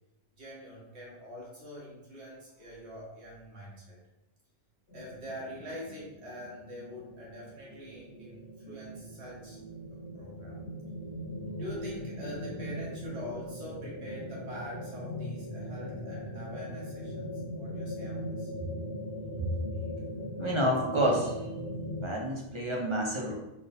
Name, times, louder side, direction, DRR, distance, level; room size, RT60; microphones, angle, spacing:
voice 1, 0.4-3.9 4.9-9.6 10.1-10.6 11.5-17.3 17.5-18.5, equal, 85° right, -5 dB, 1.7 m, -44 dB
sound 1, 4.9-22.1, equal, 75° left, 1.4 m, -40 dB
voice 2, 20.4-21.5 22.0-23.3, equal, 40° right, -2 dB, 0.5 m, -29 dB
4.0 x 3.5 x 2.6 m, 0.95 s
omnidirectional pair, 1.1 m